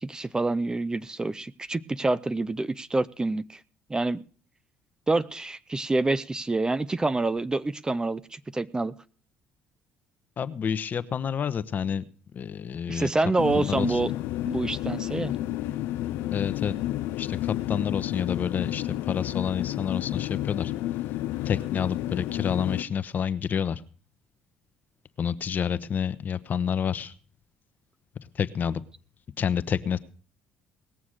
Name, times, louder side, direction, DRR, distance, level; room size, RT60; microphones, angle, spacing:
voice 1, 0.0-3.6 3.9-4.2 5.1-8.9 12.9-14.1 14.5-15.3, right 2 dB, 20° right, 17 dB, 0.6 m, -27 dB
voice 2, 10.4-12.0 12.3-13.1 13.5-14.0 16.3-16.7 17.2-20.7 21.4-23.8 25.2-27.1 28.3-28.8 29.4-30.0, left 7 dB, 50° left, 14 dB, 0.9 m, -29 dB
sound 1, 13.4-22.8, left 14 dB, 75° left, 0.5 m, -31 dB
19.0 x 7.1 x 6.4 m, 0.42 s
supercardioid pair, 65°, 4 cm